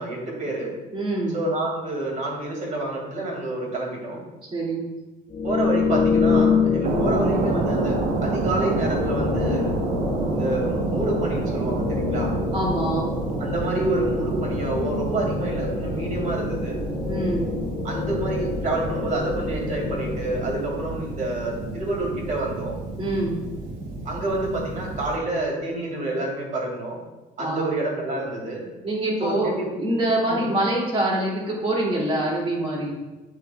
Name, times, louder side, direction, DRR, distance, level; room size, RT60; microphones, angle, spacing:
voice 1, 0.0-0.7 1.3-4.2 5.4-9.7 10.3-12.3 13.4-16.8 17.8-22.7 24.0-27.0 27.4-28.6 29.2-29.7 30.3-30.4, right 2 dB, 50° right, -1 dB, 2.4 m, -28 dB
voice 2, 0.9-1.4 4.5-4.8 12.5-13.1 17.0-17.5 23.0-23.4 27.4-27.7 28.8-29.5 29.8-32.9, right 1 dB, 35° right, -4 dB, 2.5 m, -25 dB
sound 1, 5.3-21.1, left 6 dB, 30° left, 0.4 m, -27 dB
sound 2, 6.8-25.2, right 3 dB, 85° right, 1.2 m, -29 dB
8.3 x 7.3 x 2.4 m, 1.1 s
cardioid pair, 110°, 17 cm